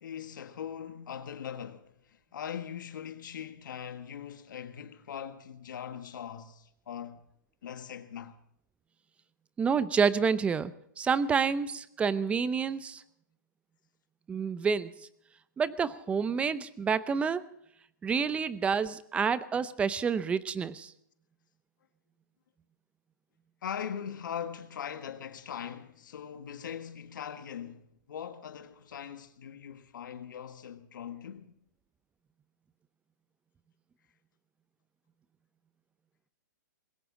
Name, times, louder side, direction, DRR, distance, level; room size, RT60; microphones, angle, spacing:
voice 1, 0.0-7.2 7.6-8.4 23.6-31.5, left 8 dB, 75° left, 1.5 m, -41 dB
voice 2, 9.6-13.0 14.3-14.9 15.6-17.4 18.0-20.9, right 6 dB, 10° right, 0.6 m, -28 dB
20.5 x 17.0 x 3.8 m
hypercardioid pair, 145°, 11 cm